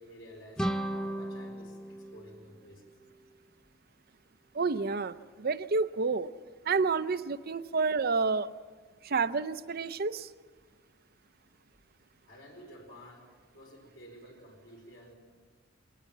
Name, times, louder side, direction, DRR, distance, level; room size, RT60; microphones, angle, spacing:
voice 1, 0.0-2.9 12.3-13.3 13.5-15.1, equal, 60° left, 1 dB, 4.6 m, -52 dB
sound 1, 0.6-3.3, right 1 dB, 5° left, 0.5 m, -36 dB
voice 2, 4.5-6.3 6.7-8.5 9.0-10.3, right 4 dB, 45° right, 13 dB, 0.6 m, -29 dB
22.5 x 18.5 x 7.3 m, 1.5 s
head